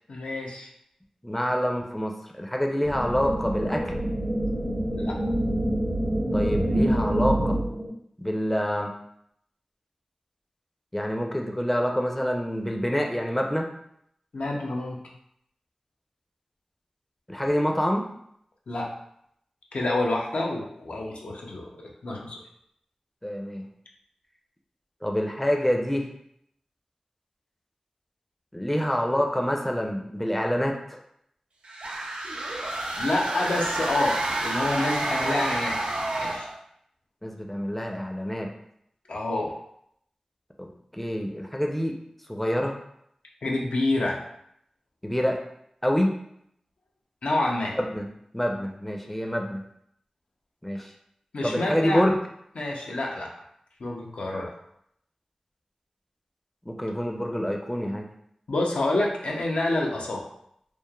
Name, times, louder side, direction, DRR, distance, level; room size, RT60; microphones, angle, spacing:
voice 1, 0.1-0.7 4.9-5.1 14.3-15.0 18.7-18.9 19.7-21.7 22.0-22.4 33.0-35.8 36.2-36.5 39.1-39.6 43.4-44.2 47.2-47.8 51.3-52.0 52.6-53.3 53.8-54.5 58.5-60.3, left 2 dB, 85° left, -1 dB, 0.4 m, -28 dB
voice 2, 1.2-4.0 6.3-7.6 8.2-8.9 10.9-13.7 17.3-18.1 23.2-23.7 25.0-26.1 28.5-31.0 37.2-38.5 40.6-42.0 42.3-42.8 45.0-45.4 45.8-46.1 47.8-48.1 48.3-49.6 50.6-50.9 51.4-52.1 56.7-58.1, equal, 10° left, 2 dB, 0.4 m, -27 dB
sound 1, 2.8-7.9, right 1 dB, 55° right, 0.7 m, -26 dB
sound 2, 31.6-36.6, right 2 dB, 85° right, 0.4 m, -29 dB
3.0 x 2.0 x 2.2 m, 0.72 s
cardioid pair, 45°, 2 cm